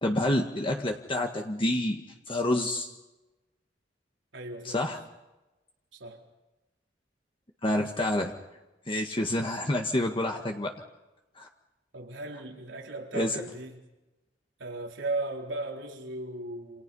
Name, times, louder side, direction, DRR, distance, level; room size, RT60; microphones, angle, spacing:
voice 1, 0.0-2.0 2.3-2.9 4.6-5.0 7.6-8.3 8.9-10.7 11.4-11.5 13.1-13.4, left 1 dB, 30° left, 1.7 m, -28 dB
voice 2, 4.3-4.9 5.9-6.2 11.9-13.8 14.6-16.8, right 2 dB, 90° right, 4.2 m, -36 dB
28.5 x 28.0 x 5.6 m
head